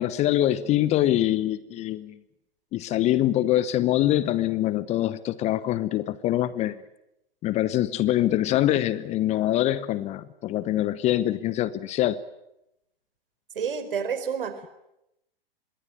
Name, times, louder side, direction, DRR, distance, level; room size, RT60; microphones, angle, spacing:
voice 1, 0.0-2.2 2.7-6.8 7.4-12.2, left 13 dB, 20° left, 0.9 m, -24 dB
voice 2, 13.5-14.7, right 6 dB, 65° right, 4.3 m, -29 dB
26.0 x 22.0 x 9.4 m
figure-of-eight pair, 110°, 30 cm